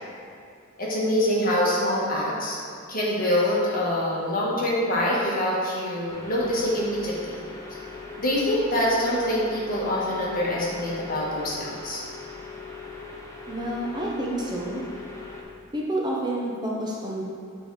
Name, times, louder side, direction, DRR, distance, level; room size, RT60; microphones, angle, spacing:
voice 1, 0.8-2.6 2.9-7.4 8.2-12.0, left 1 dB, 45° left, -5 dB, 1.4 m, -25 dB
sound 1, 6.1-15.4, left 4 dB, 15° left, 0.6 m, -40 dB
voice 2, 13.5-14.8 15.7-17.2, right 1 dB, 20° right, -3 dB, 0.7 m, -29 dB
7.5 x 3.5 x 4.6 m, 2.5 s
head